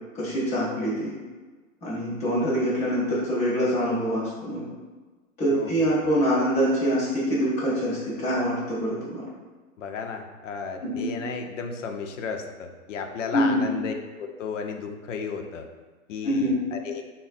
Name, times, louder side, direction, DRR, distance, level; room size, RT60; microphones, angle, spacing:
voice 1, 0.1-1.1 1.8-4.6 5.4-9.2 10.8-11.1 13.3-13.6 16.2-16.6, equal, 10° left, -9 dB, 0.4 m, -25 dB
voice 2, 5.5-6.1 9.8-15.7 16.1-17.0, left 5 dB, 60° left, 4 dB, 0.6 m, -33 dB
3.8 x 2.1 x 4.0 m, 1.3 s
hypercardioid pair, 150°, 42 cm